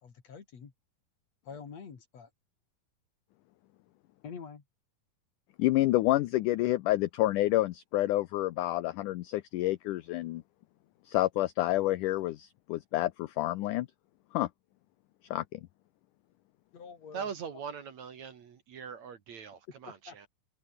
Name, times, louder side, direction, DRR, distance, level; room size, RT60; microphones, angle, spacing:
voice 1, 0.0-0.7 1.5-2.3 4.2-4.6 16.7-17.3 20.1-20.2, left 6 dB, 45° left, 3.8 m, -46 dB
voice 2, 5.6-10.4 11.0-13.9 14.3-14.5 15.3-15.7, left 16 dB, 75° left, 1.9 m, -28 dB
voice 3, 17.1-20.3, right 7 dB, 55° right, 2.7 m, -41 dB
omnidirectional pair, 4.4 m